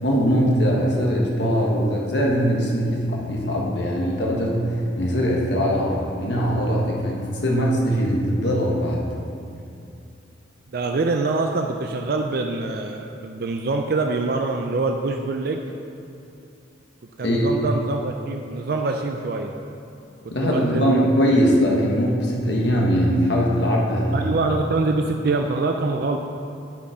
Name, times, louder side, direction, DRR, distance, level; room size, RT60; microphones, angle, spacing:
voice 1, 0.0-4.7 5.0-9.1 17.2-17.5 20.3-24.3, equal, 65° left, -2 dB, 1.3 m, -21 dB
voice 2, 10.7-15.6 17.2-19.5 20.4-21.1 24.1-26.2, right 3 dB, 55° right, 3 dB, 0.4 m, -24 dB
9.1 x 5.4 x 4.9 m, 2.6 s
head